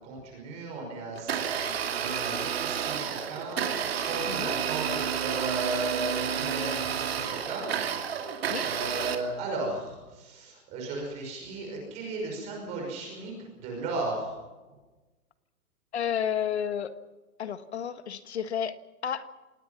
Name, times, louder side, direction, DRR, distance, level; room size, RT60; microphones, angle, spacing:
voice 1, 0.0-7.6 8.6-14.3, right 2 dB, 15° right, 0 dB, 5.6 m, -35 dB
Domestic sounds home sounds, 1.1-9.1, right 8 dB, 45° right, 2.6 m, -30 dB
voice 2, 15.9-16.9 17.4-19.3, left 8 dB, 45° left, 11 dB, 1.6 m, -31 dB
28.0 x 19.5 x 6.0 m, 1.2 s
hypercardioid pair, 180°, 44 cm